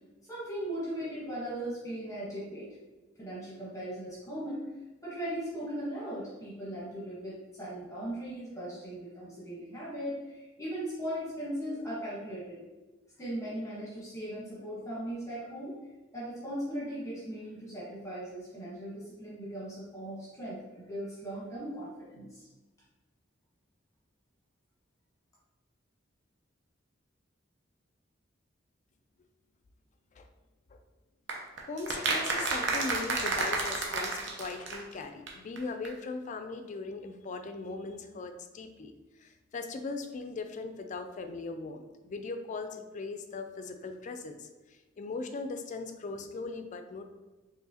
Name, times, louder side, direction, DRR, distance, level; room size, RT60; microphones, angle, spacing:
voice 1, 0.3-2.7 3.2-4.7 5.0-12.6 13.2-15.8 16.1-22.5, right 1 dB, 15° left, -7 dB, 1.0 m, -38 dB
sound 1, 31.3-35.0 35.3-35.4 35.6-35.7 35.8-35.9, right 3 dB, 70° right, 0.7 m, -31 dB
voice 2, 31.7-38.9 39.2-47.1, left 3 dB, 40° left, 7 dB, 0.4 m, -39 dB
4.7 x 3.1 x 2.7 m, 1.1 s
head